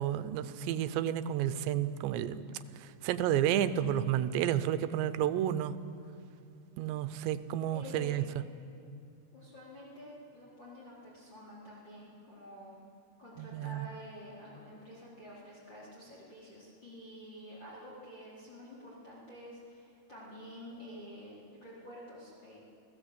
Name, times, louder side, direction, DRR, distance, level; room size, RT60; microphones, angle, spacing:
voice 1, 0.0-2.4 2.8-5.8 6.8-8.3 13.4-13.9, right 11 dB, 85° right, 13 dB, 3.0 m, -31 dB
voice 2, 7.7-8.2 9.3-12.8 13.2-22.6, equal, 25° left, -6 dB, 4.5 m, -49 dB
29.5 x 16.5 x 8.2 m, 2.4 s
omnidirectional pair, 4.9 m